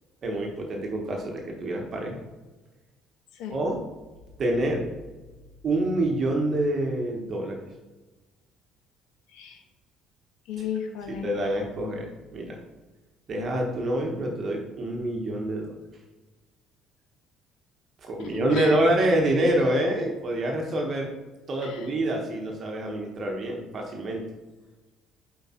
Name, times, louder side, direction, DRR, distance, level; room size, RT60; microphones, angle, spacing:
voice 1, 0.2-2.2 3.5-3.8 4.4-4.8 5.6-7.6 11.1-12.1 12.3-12.6 13.3-15.7 18.0-21.1 21.5-24.2, right 1 dB, 35° right, 1 dB, 1.2 m, -26 dB
voice 2, 10.5-11.3 18.2-18.7 21.6-21.8, left 7 dB, 90° left, 4 dB, 1.4 m, -34 dB
8.0 x 4.7 x 4.3 m, 1.2 s
cardioid pair, 155°, 0 cm